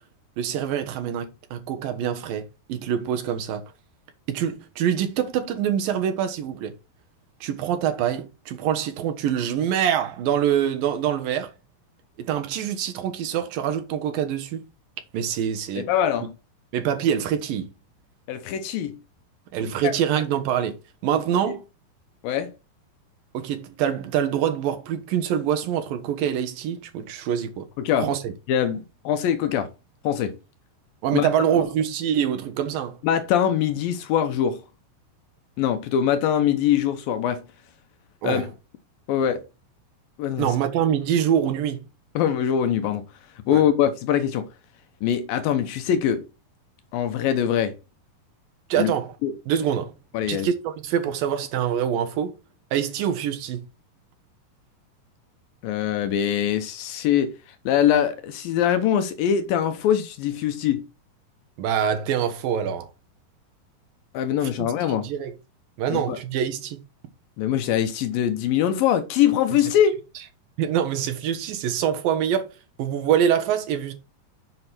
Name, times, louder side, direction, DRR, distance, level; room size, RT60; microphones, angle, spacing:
voice 1, 0.4-3.6 4.3-6.7 7.4-11.5 12.2-14.6 15.1-15.9 16.7-17.7 19.5-20.8 21.0-21.6 23.3-27.7 28.0-28.3 31.0-33.0 38.2-38.5 40.4-41.9 43.5-43.6 48.7-49.1 49.5-49.9 50.3-52.4 52.7-53.6 61.6-62.9 64.6-65.3 65.8-66.8 70.6-72.5 72.8-73.9, right 9 dB, 75° right, 2.9 m, -25 dB
voice 2, 15.8-16.3 18.3-19.0 19.8-19.9 22.2-22.5 27.8-28.1 28.5-29.7 30.0-30.4 31.1-31.3 33.0-34.6 35.6-37.4 38.2-38.5 39.1-39.4 40.2-40.5 42.2-43.0 43.5-44.5 45.0-46.3 46.9-47.8 48.8-48.9 49.2-49.3 50.1-50.5 55.6-60.8 64.1-65.1 65.9-66.2 67.4-70.0, left 9 dB, 75° left, 2.5 m, -23 dB
7.7 x 6.2 x 4.4 m
omnidirectional pair, 4.3 m